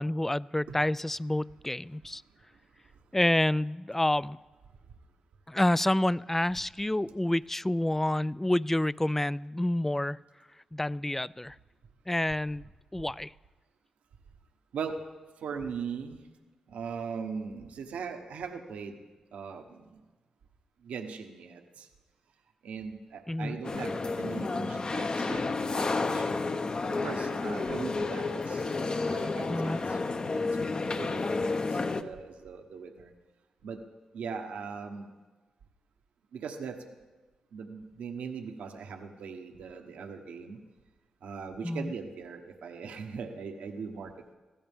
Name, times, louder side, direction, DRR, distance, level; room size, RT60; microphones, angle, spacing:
voice 1, 0.0-2.2 3.1-4.4 5.5-10.2 10.7-11.6 12.1-12.7 12.9-13.3 23.3-23.6 29.5-29.8 41.6-41.9, left 1 dB, 15° left, 21 dB, 0.4 m, -28 dB
voice 2, 15.4-16.2 16.7-19.0 19.3-19.9 20.8-21.9 22.6-26.5 27.0-28.7 29.0-30.0 30.3-30.4 30.7-33.1 33.6-33.8 34.1-35.1 36.3-36.8 37.5-40.6 41.2-44.3, right 6 dB, 80° right, 4 dB, 1.2 m, -40 dB
sound 1, 23.6-32.0, left 3 dB, 45° left, 1.0 m, -31 dB
23.0 x 15.5 x 3.6 m, 1.3 s
supercardioid pair, 50°, 2 cm